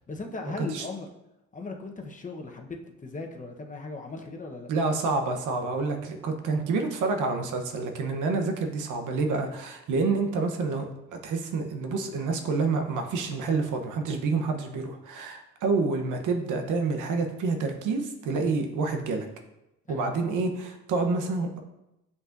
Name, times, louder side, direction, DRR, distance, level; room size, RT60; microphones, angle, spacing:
voice 1, 0.1-1.1 1.5-4.7 19.9-20.1, left 3 dB, 25° left, 2 dB, 0.9 m, -38 dB
voice 2, 4.7-10.9 11.2-19.2 19.9-21.6, right 4 dB, 85° right, 5 dB, 0.9 m, -28 dB
8.0 x 5.5 x 2.6 m, 0.92 s
cardioid pair, 90°, 30 cm